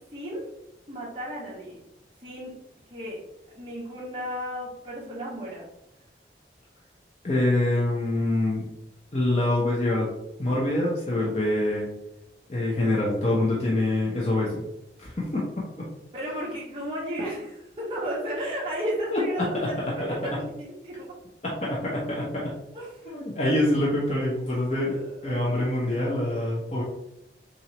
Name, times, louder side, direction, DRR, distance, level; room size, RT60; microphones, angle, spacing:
voice 1, 0.9-1.8 2.2-2.5 2.9-3.2 3.5-5.7 16.1-20.5 20.8-21.1 22.7-22.9 24.8-25.3, equal, 30° right, -6 dB, 1.7 m, -33 dB
voice 2, 7.2-8.7 9.1-10.1 10.4-11.9 12.5-14.6 15.0-15.5 15.8-15.9 19.1-19.9 21.4-22.5 23.1-26.8, left 1 dB, 40° left, -5 dB, 0.9 m, -25 dB
5.9 x 2.7 x 3.0 m, 0.85 s
head